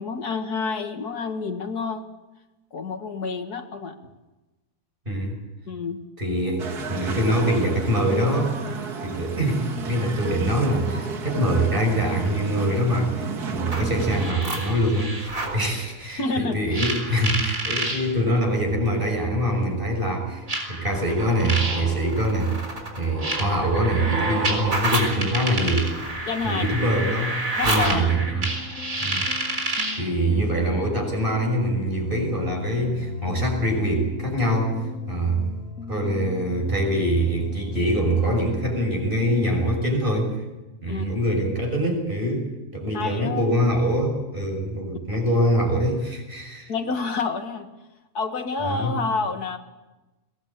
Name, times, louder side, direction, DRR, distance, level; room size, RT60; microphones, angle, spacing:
voice 1, 0.0-2.1 2.7-4.0 5.7-6.0 16.2-16.6 26.3-26.8 27.6-28.2 40.9-41.1 42.9-43.6 46.7-47.7 48.1-49.6, left 4 dB, 80° left, 6 dB, 2.2 m, -28 dB
voice 2, 6.2-8.5 9.0-13.2 13.5-22.6 23.0-25.9 26.4-28.5 29.0-29.3 30.0-34.8 35.1-35.5 35.9-40.4 40.8-42.5 42.7-46.7 48.6-48.9, right 1 dB, 35° right, 2 dB, 6.3 m, -24 dB
sound 1, 6.6-14.3, right 5 dB, 80° right, 2.1 m, -32 dB
sound 2, 13.6-15.6 16.7-18.0 19.1-19.2 20.5-30.1, right 2 dB, 60° right, 4.6 m, -28 dB
sound 3, 28.2-39.9, left 6 dB, 60° left, 1.6 m, -37 dB
22.0 x 18.5 x 8.7 m, 1.1 s
omnidirectional pair, 1.6 m